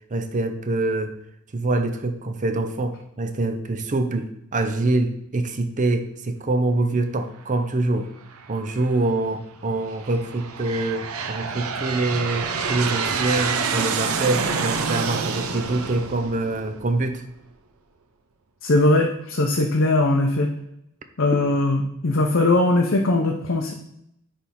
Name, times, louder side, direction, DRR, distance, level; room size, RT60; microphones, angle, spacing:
voice 1, 0.1-1.1 1.5-8.1 8.5-17.2, right 2 dB, 35° right, 8 dB, 0.6 m, -25 dB
Aircraft, 8.3-8.9 9.6-17.2, right 5 dB, 85° right, 0.7 m, -28 dB
voice 2, 18.6-20.5 21.2-23.7, left 2 dB, 65° left, 2 dB, 0.8 m, -20 dB
10.0 x 3.5 x 4.2 m, 0.79 s
head